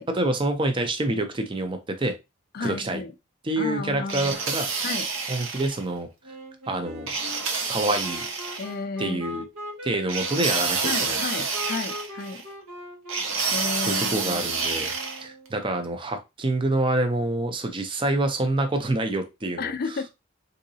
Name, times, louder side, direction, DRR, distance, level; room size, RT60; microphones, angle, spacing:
voice 1, 0.1-2.1 2.6-3.0 3.4-4.7 5.3-6.1 6.7-7.1 7.7-8.3 9.0-9.4 9.8-11.2 13.8-14.9 15.2-19.7, right 2 dB, 25° right, 0.5 m, -27 dB
voice 2, 2.5-3.1 3.6-4.4 4.8-5.1 8.6-9.2 10.8-12.4 13.5-14.5 19.6-20.1, left 4 dB, 45° left, 0.4 m, -32 dB
sound 1, 4.1-5.8 7.1-8.7 10.1-12.4 13.1-15.2, right 4 dB, 65° right, 0.8 m, -28 dB
Wind instrument woodwind instrument, 6.2-15.7, equal, 85° right, 1.2 m, -41 dB
3.8 x 2.7 x 2.7 m
head